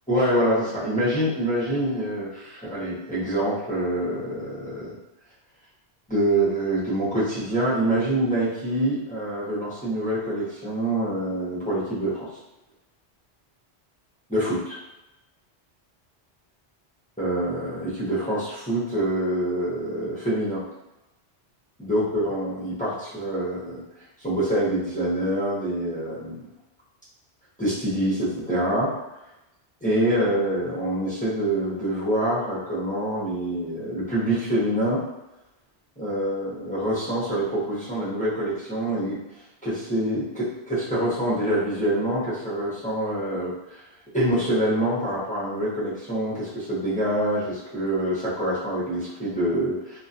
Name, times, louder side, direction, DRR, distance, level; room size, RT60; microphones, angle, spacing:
voice 1, 0.1-4.9 6.1-12.3 14.3-14.8 17.2-20.6 21.8-23.8 24.2-26.4 27.6-28.9 29.8-35.0 36.0-39.2 39.6-43.8 44.1-50.0, right 1 dB, 10° left, -10 dB, 0.6 m, -25 dB
2.4 x 2.2 x 2.6 m, 0.96 s
omnidirectional pair, 1.1 m